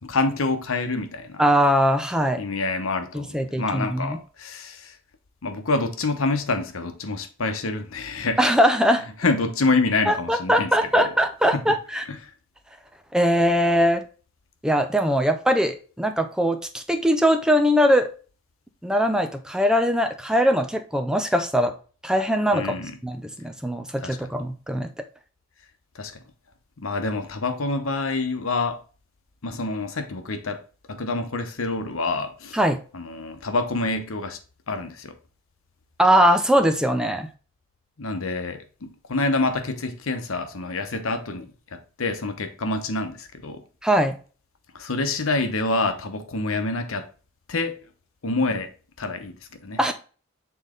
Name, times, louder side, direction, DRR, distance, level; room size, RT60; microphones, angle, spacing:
voice 1, 0.0-1.4 2.4-5.0 5.4-8.5 9.2-11.1 11.5-11.7 12.1-12.3 22.5-22.9 24.0-24.2 25.9-26.2 26.8-28.8 29.4-30.6 30.9-32.6 32.9-34.4 34.7-35.2 38.0-43.6 44.7-47.1 47.5-47.8 48.2-49.8, left 3 dB, 75° left, 1.0 m, -27 dB
voice 2, 1.4-2.4 3.1-4.2 8.4-9.0 10.1-12.0 13.1-14.0 14.6-18.1 18.8-21.7 22.0-22.7 23.0-24.9 32.5-32.8 36.0-37.3 43.8-44.1 49.8-49.9, equal, 5° right, 0.5 m, -21 dB
7.2 x 4.0 x 3.7 m
head